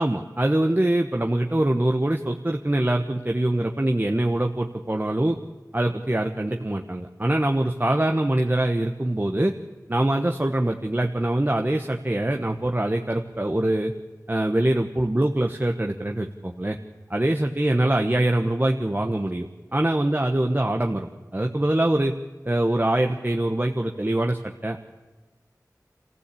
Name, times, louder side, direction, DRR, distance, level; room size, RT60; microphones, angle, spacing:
voice 1, 0.0-5.4 5.7-9.5 9.9-13.9 14.3-16.8 17.1-22.1 22.4-24.8, right 1 dB, 30° right, 3 dB, 1.1 m, -24 dB
26.5 x 15.5 x 8.5 m, 1.2 s
wide cardioid pair, 45°, 7 cm